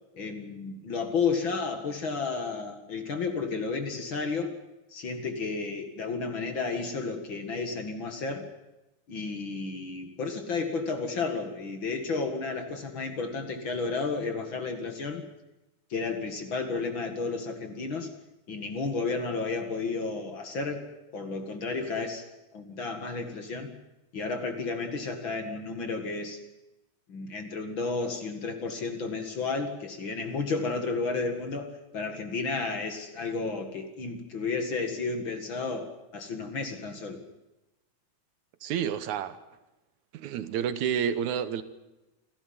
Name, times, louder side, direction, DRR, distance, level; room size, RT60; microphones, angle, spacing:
voice 1, 0.1-4.6 4.9-8.5 9.1-15.2 15.9-18.1 18.5-20.8 21.1-22.3 22.5-23.7 24.1-26.4 27.1-37.2, left 4 dB, 45° left, 6 dB, 2.4 m, -32 dB
voice 2, 38.6-39.4 40.1-41.6, right 8 dB, 75° right, 12 dB, 2.4 m, -29 dB
28.0 x 13.0 x 9.5 m, 1.0 s
omnidirectional pair, 3.4 m